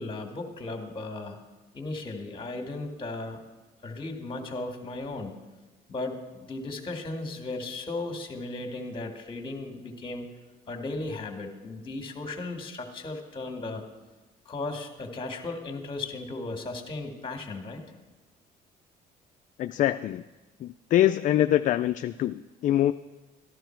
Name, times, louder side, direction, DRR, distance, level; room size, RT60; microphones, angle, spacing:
voice 1, 0.0-1.4 1.7-3.4 3.8-5.3 5.9-10.3 10.7-13.8 14.5-17.8, left 2 dB, 30° left, 4 dB, 1.9 m, -36 dB
voice 2, 19.6-20.2 20.6-22.9, left 12 dB, 50° left, 9 dB, 0.4 m, -24 dB
14.0 x 11.5 x 4.5 m, 1.2 s
cardioid pair, 110°, 17 cm